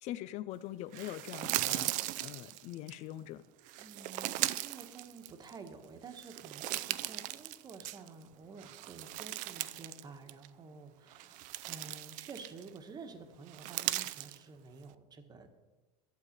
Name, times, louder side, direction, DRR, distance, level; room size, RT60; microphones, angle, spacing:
voice 1, 0.0-3.4, left 13 dB, 45° left, 15 dB, 0.4 m, -43 dB
sound 1, 0.9-2.9 3.7-5.7 6.1-8.2 8.6-10.0 10.3-10.5 11.1-12.8 13.5-14.4, right 16 dB, 55° right, 0.5 m, -38 dB
voice 2, 3.8-15.5, right 4 dB, 25° right, 6 dB, 1.3 m, -50 dB
11.5 x 8.2 x 6.6 m, 1.2 s
supercardioid pair, 140°, 16 cm